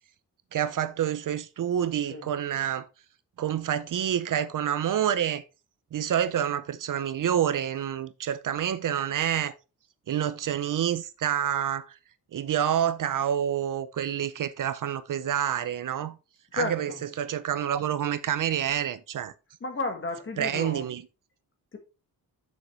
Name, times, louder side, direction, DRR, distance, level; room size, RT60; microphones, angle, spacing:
voice 1, 0.5-2.9 3.4-5.4 5.9-9.5 10.1-11.9 12.3-16.2 16.5-19.3 20.4-21.0, right 9 dB, 60° right, 0.6 m, -28 dB
voice 2, 16.5-17.0 19.6-20.9 21.7-21.8, left 3 dB, 35° left, 1.5 m, -32 dB
7.0 x 6.5 x 3.2 m
wide cardioid pair, 170°, 36 cm